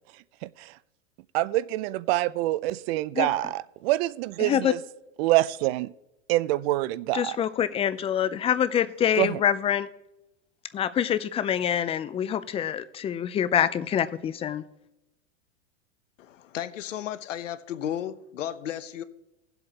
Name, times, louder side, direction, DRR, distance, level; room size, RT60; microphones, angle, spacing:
voice 1, 0.4-0.7 1.3-4.8 5.2-5.9 6.3-7.4 9.2-9.4, right 17 dB, 55° right, 0.5 m, -26 dB
voice 2, 4.4-4.7 7.1-9.9 10.7-14.6, left 9 dB, 15° left, 0.4 m, -25 dB
voice 3, 16.2-19.0, left 10 dB, 90° left, 0.8 m, -34 dB
18.0 x 7.9 x 2.9 m
hypercardioid pair, 115°, 37 cm